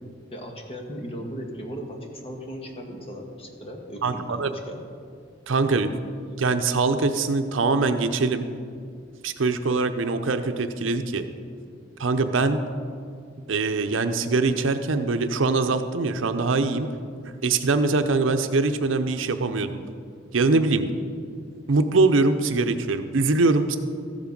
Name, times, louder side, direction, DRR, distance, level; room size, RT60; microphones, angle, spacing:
voice 1, 0.3-4.8, equal, 30° left, 1 dB, 1.5 m, -37 dB
voice 2, 4.0-4.5 5.5-5.9 6.4-8.5 9.2-11.2 12.0-12.6 13.5-16.9 17.4-19.8 20.3-20.8 21.7-23.8, right 3 dB, 75° right, 8 dB, 0.6 m, -23 dB
14.0 x 7.3 x 5.3 m, 2.2 s
head